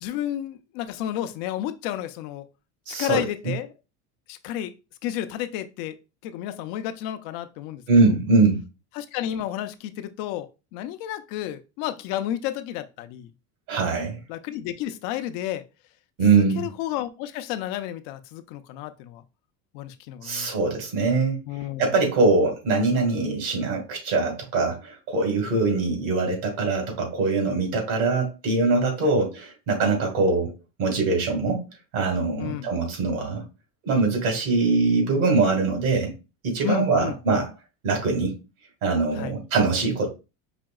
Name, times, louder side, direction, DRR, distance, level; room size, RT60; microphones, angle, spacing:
voice 1, 0.0-2.5 2.9-3.7 4.3-4.7 5.0-6.0 6.2-7.8 8.9-13.3 14.3-15.6 16.4-19.2 19.7-20.5 21.5-21.9 29.0-29.1 32.4-32.7 36.6-37.2 39.1-39.3, left 12 dB, 65° left, 0.6 m, -31 dB
voice 2, 2.9-3.5 7.9-8.6 13.7-14.2 16.2-16.7 20.2-21.4 21.8-30.5 30.8-31.6 31.9-33.4 33.8-36.1 36.4-37.5 37.8-38.4 38.8-40.1, right 3 dB, 80° right, 2.2 m, -22 dB
5.1 x 2.8 x 2.3 m
supercardioid pair, 125°, 36 cm